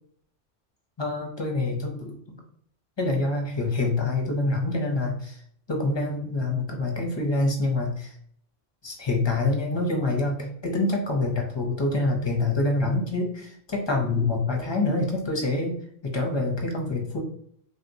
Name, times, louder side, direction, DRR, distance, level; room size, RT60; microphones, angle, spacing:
voice 1, 1.0-2.4 3.0-5.4 5.7-8.1 8.8-15.7 16.0-17.2, left 2 dB, 35° left, 1 dB, 0.4 m, -26 dB
3.3 x 2.8 x 2.6 m, 0.64 s
omnidirectional pair, 1.3 m